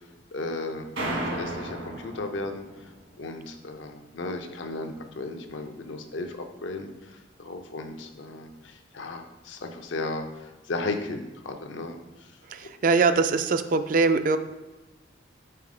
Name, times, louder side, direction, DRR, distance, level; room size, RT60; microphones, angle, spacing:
voice 1, 0.3-2.9 3.2-12.4, left 2 dB, 75° left, 5 dB, 0.6 m, -35 dB
sound 1, 1.0-2.9, right 1 dB, 75° right, 1.6 m, -33 dB
voice 2, 12.5-14.4, right 4 dB, 45° right, 10 dB, 0.3 m, -22 dB
5.7 x 3.7 x 4.9 m, 1.1 s
head